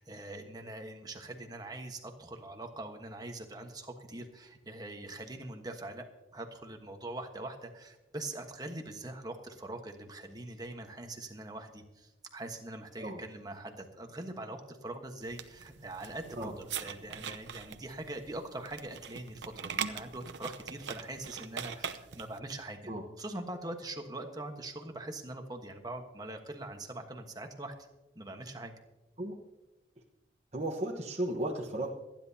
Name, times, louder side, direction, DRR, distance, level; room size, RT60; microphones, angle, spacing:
voice 1, 0.0-22.9 23.2-27.7 28.1-28.7, right 2 dB, 20° right, 4 dB, 1.3 m, -43 dB
sound 1, 15.2-22.4, right 7 dB, 80° right, 0.8 m, -42 dB
voice 2, 30.5-31.9, right 1 dB, 40° right, -2 dB, 1.2 m, -35 dB
27.0 x 10.5 x 2.8 m, 1.0 s
head